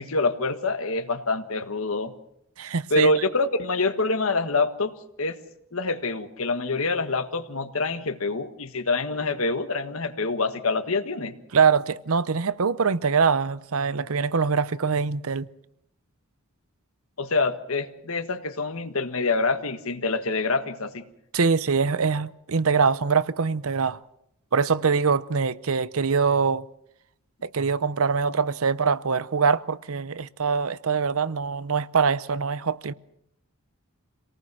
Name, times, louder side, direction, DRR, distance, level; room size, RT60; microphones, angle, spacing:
voice 1, 0.0-2.1 2.9-4.9 5.2-5.4 5.7-11.3 17.2-21.1, left 3 dB, 70° left, 1.5 m, -26 dB
voice 2, 2.6-3.1 11.5-15.5 21.3-24.0 24.5-26.7 27.4-32.9, right 5 dB, 70° right, 0.7 m, -23 dB
26.5 x 18.5 x 6.2 m
head